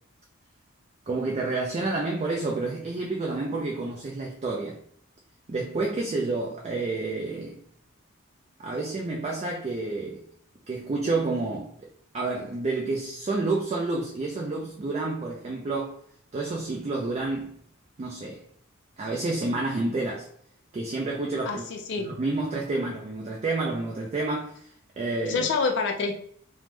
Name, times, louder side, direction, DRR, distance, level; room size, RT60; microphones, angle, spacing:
voice 1, 1.1-4.8 5.5-7.6 8.6-10.2 10.7-11.7 12.1-16.0 16.3-17.5 18.0-18.4 19.0-20.3 20.7-21.6 22.0-24.7 25.0-25.5, right 3 dB, 30° right, 0.3 m, -29 dB
voice 2, 21.4-22.1 25.3-26.1, left 4 dB, 55° left, 0.3 m, -27 dB
3.2 x 2.0 x 3.1 m
head